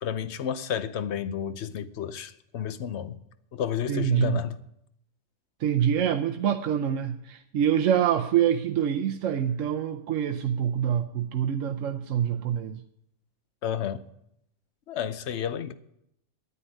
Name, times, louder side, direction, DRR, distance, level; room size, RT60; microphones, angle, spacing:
voice 1, 0.0-3.2 3.5-4.6 13.6-14.1 14.9-15.7, left 9 dB, 65° left, 1.0 m, -31 dB
voice 2, 3.9-4.4 5.6-12.8, right 9 dB, 85° right, 1.1 m, -25 dB
9.7 x 9.5 x 9.9 m
omnidirectional pair, 1.3 m